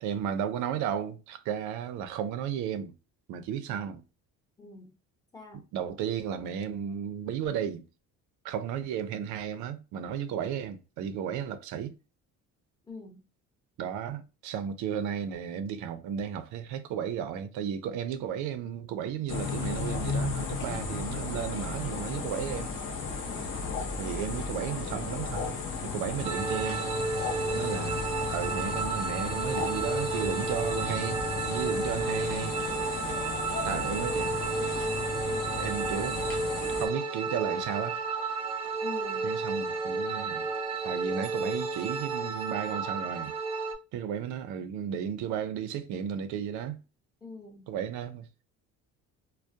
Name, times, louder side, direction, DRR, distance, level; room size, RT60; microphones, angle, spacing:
voice 1, 0.0-3.0 3.3-4.0 5.7-7.9 8.4-11.9 13.8-22.7 24.0-26.9 27.5-28.1 28.3-31.2 31.5-32.6 33.6-34.7 35.6-36.4 36.8-38.0 39.2-40.5 40.8-43.3 43.9-46.8 47.7-48.4, right 8 dB, 75° right, 0.5 m, -34 dB
voice 2, 4.6-4.9 5.3-5.7 12.9-13.2 23.2-23.5 38.8-39.3 47.2-47.7, left 3 dB, 10° left, 0.8 m, -44 dB
sound 1, 19.3-36.9, left 4 dB, 40° left, 0.6 m, -34 dB
sound 2, 26.2-43.7, right 4 dB, 20° right, 0.4 m, -32 dB
2.2 x 2.1 x 2.6 m
cardioid pair, 140°, 30 cm